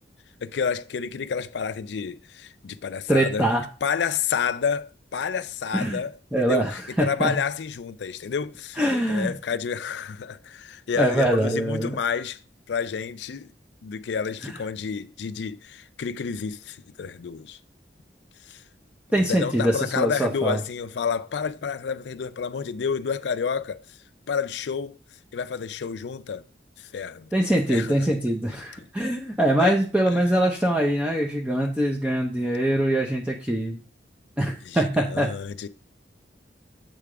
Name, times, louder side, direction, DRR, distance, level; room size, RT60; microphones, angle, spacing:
voice 1, 0.4-3.5 3.8-8.8 9.1-12.4 12.7-13.5 13.8-17.6 18.4-18.6 19.1-24.0 24.3-24.9 25.3-26.4 26.8-27.3 27.7-28.1 29.6-29.8 30.1-30.2 34.6-35.7, left 6 dB, 70° left, 0.4 m, -30 dB
voice 2, 3.1-3.6 5.7-6.0 6.3-7.4 8.8-9.3 11.0-12.0 14.4-14.5 19.1-20.6 27.3-33.8 34.4-35.3, right 1 dB, 5° right, 0.6 m, -23 dB
7.6 x 3.4 x 4.8 m
head